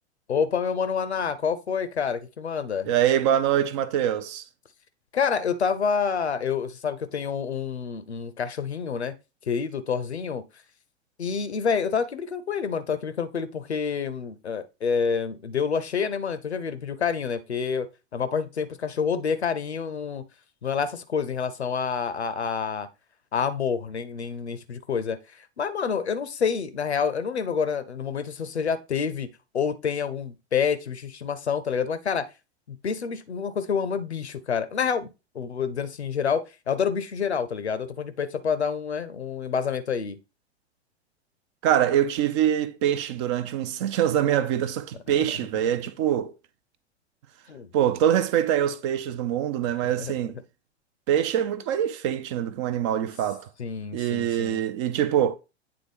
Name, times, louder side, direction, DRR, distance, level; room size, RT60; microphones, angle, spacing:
voice 1, 0.3-2.9 5.1-9.1 9.5-10.4 11.2-20.2 20.6-22.9 23.3-32.3 32.7-35.1 35.3-40.2 47.5-47.7 49.8-50.1 53.6-54.6, left 6 dB, 75° left, 0.7 m, -28 dB
voice 2, 2.8-4.4 41.6-46.3 47.7-50.4 51.1-53.5 53.9-55.3, right 10 dB, 30° right, 0.4 m, -24 dB
8.7 x 3.6 x 3.4 m
figure-of-eight pair, 95°, 33 cm